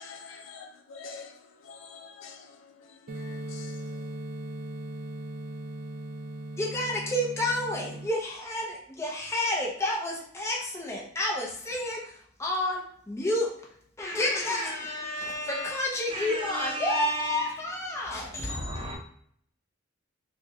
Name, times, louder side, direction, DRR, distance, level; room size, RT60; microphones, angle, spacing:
voice 1, 0.0-3.9, left 5 dB, 65° left, 0.5 m, -47 dB
sound 1, 3.1-8.1, right 1 dB, 45° right, 0.3 m, -38 dB
voice 2, 6.6-13.5 14.0-19.0, left 1 dB, 15° left, 0.6 m, -30 dB
voice 3, 16.1-17.5 18.4-19.0, right 1 dB, 25° right, 0.7 m, -33 dB
3.6 x 2.2 x 3.0 m
head